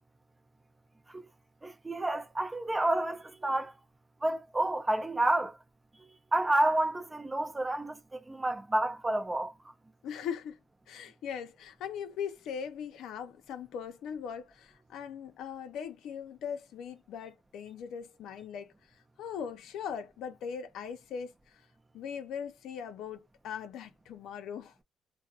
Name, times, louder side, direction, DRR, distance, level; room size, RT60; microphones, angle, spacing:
voice 1, 1.6-3.7 4.2-5.6 6.3-9.5, right 1 dB, 15° right, 0.6 m, -29 dB
voice 2, 10.0-10.6 10.9-18.7 19.2-21.6 21.9-24.7, left 7 dB, 75° left, 0.5 m, -40 dB
2.5 x 2.1 x 2.3 m
cardioid pair, 90°, 0 cm